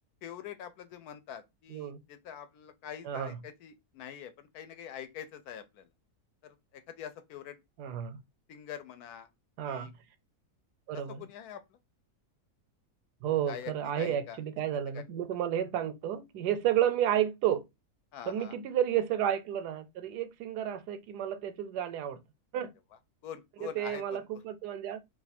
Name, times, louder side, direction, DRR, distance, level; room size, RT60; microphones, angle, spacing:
voice 1, 0.2-5.9 6.4-7.6 8.5-9.3 9.6-9.9 10.9-11.6 13.5-13.7 14.0-14.4 14.9-15.0 18.1-18.5 23.2-24.2, left 9 dB, 75° left, 1.1 m, -44 dB
voice 2, 1.7-2.0 3.0-3.4 7.8-8.2 9.6-9.9 10.9-11.3 13.2-17.6 18.3-22.2 22.5-22.7 23.6-25.0, right 10 dB, 85° right, 1.2 m, -31 dB
2.8 x 2.4 x 4.0 m
omnidirectional pair, 1.7 m